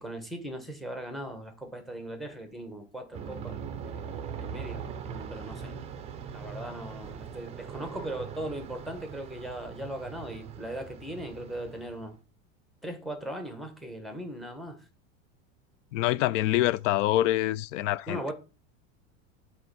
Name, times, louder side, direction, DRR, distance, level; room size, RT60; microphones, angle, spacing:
voice 1, 0.0-5.7 6.3-12.2 12.8-14.8 18.1-18.3, right 1 dB, ahead, 0.9 m, -39 dB
Aircraft, 3.1-12.1, right 7 dB, 20° right, 0.5 m, -41 dB
voice 2, 15.9-18.3, left 15 dB, 85° left, 0.5 m, -26 dB
7.7 x 3.1 x 5.2 m
supercardioid pair, 160°, 36 cm